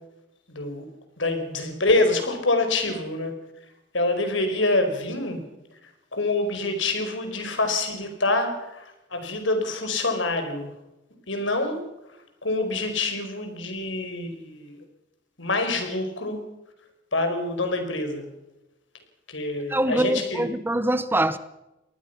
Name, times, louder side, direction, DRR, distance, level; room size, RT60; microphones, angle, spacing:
voice 1, 0.5-0.8 1.2-3.3 3.9-5.4 6.1-8.8 9.1-10.7 11.3-11.8 12.4-14.8 15.4-16.4 17.1-18.2 19.3-20.4, left 2 dB, 80° left, 6 dB, 4.9 m, -26 dB
voice 2, 19.7-21.4, right 1 dB, 10° right, 13 dB, 0.8 m, -24 dB
24.0 x 19.0 x 5.8 m, 0.94 s
head